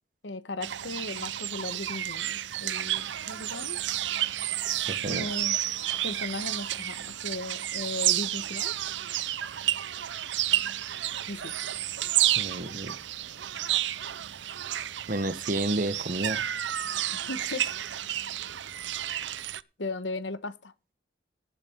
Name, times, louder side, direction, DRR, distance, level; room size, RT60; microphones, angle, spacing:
voice 1, 0.2-3.8 5.1-5.6 6.0-8.8 11.3-11.5 17.1-17.7 19.8-20.7, left 2 dB, 85° left, 1.2 m, -37 dB
sound 1, 0.6-19.6, right 13 dB, 80° right, 0.6 m, -31 dB
voice 2, 4.9-5.3 12.4-13.0 15.1-16.4, right 1 dB, 45° right, 1.1 m, -31 dB
18.5 x 6.9 x 4.5 m
head